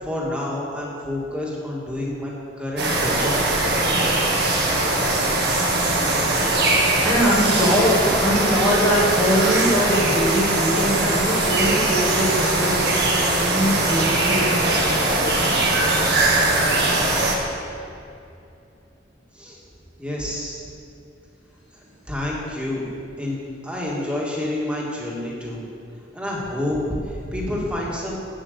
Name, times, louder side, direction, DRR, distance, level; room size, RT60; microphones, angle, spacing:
voice 1, 0.0-2.3 2.6-3.3 3.6-4.2 19.3-19.6 20.0-20.6 22.1-22.9 23.2-25.6 26.1-26.8 27.0-28.2, left 1 dB, 5° right, -5 dB, 2.0 m, -28 dB
sound 1, 2.8-17.4, right 2 dB, 60° right, 1.7 m, -21 dB
voice 2, 6.6-15.8, equal, 15° left, -8 dB, 1.5 m, -23 dB
8.8 x 7.6 x 6.9 m, 2.6 s
head